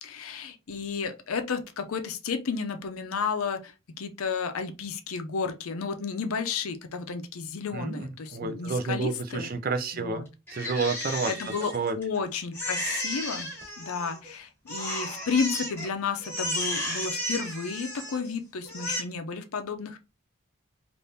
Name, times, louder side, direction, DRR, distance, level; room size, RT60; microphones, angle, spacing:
voice 1, 0.0-9.5 9.9-10.3 11.0-13.5 13.8-20.0, left 5 dB, 75° left, 0.5 m, -32 dB
voice 2, 7.7-10.3 10.5-11.3 11.7-12.0, right 4 dB, 40° right, 0.4 m, -30 dB
Crying sobbing, 10.5-12.2 12.5-14.3 14.7-15.9 16.2-18.3 18.6-19.0, left 1 dB, 10° left, 1.3 m, -33 dB
3.4 x 2.5 x 2.7 m
head